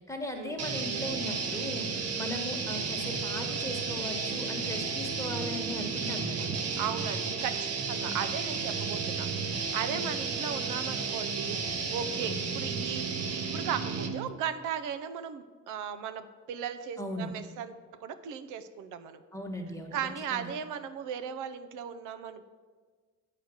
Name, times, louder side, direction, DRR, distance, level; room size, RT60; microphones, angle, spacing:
voice 1, 0.1-6.5 9.9-10.1 12.2-12.5 17.0-17.3 19.3-20.0 20.3-20.5, left 1 dB, 10° left, 3 dB, 1.2 m, -38 dB
sound 1, 0.6-14.3, right 5 dB, 55° right, 1.0 m, -33 dB
voice 2, 6.8-19.2 19.9-22.5, right 8 dB, 90° right, 10 dB, 0.6 m, -37 dB
8.0 x 5.0 x 6.3 m, 1.5 s
cardioid pair, 90°, 30 cm